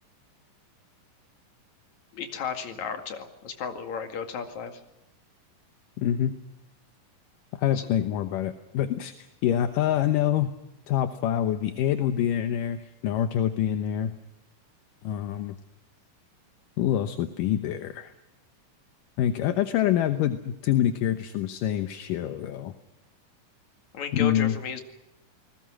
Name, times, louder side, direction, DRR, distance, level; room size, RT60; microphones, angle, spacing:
voice 1, 2.1-4.8 7.7-7.9 23.9-24.8, left 6 dB, 60° left, 6 dB, 3.4 m, -34 dB
voice 2, 6.0-6.3 7.6-10.5 10.9-14.1 15.0-15.6 16.8-18.1 19.2-22.7 24.1-24.6, left 11 dB, 75° left, 8 dB, 2.6 m, -26 dB
29.5 x 20.0 x 6.3 m, 0.95 s
omnidirectional pair, 3.9 m